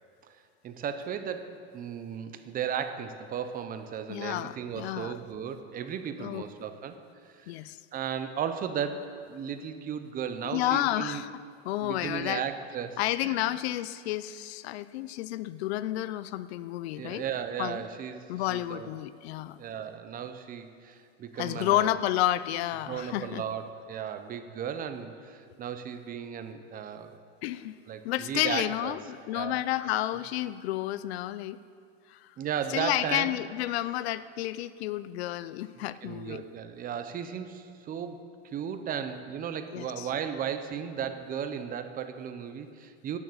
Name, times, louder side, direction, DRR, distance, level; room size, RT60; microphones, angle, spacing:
voice 1, 0.6-7.5 7.9-11.2 11.8-13.5 17.0-18.9 19.6-21.9 22.9-27.2 27.9-29.0 29.3-29.6 32.4-33.3 35.8-43.2, right 8 dB, 25° right, 9 dB, 0.8 m, -35 dB
voice 2, 4.1-5.1 6.2-6.4 7.5-7.8 10.5-11.3 11.7-12.4 13.0-17.2 17.6-17.8 18.3-19.6 21.4-23.4 27.4-27.8 28.0-31.6 32.1-32.3 32.7-36.4 39.7-40.1, left 14 dB, 75° left, 15 dB, 0.6 m, -31 dB
10.5 x 9.1 x 7.9 m, 2.3 s
supercardioid pair, 140°, 32 cm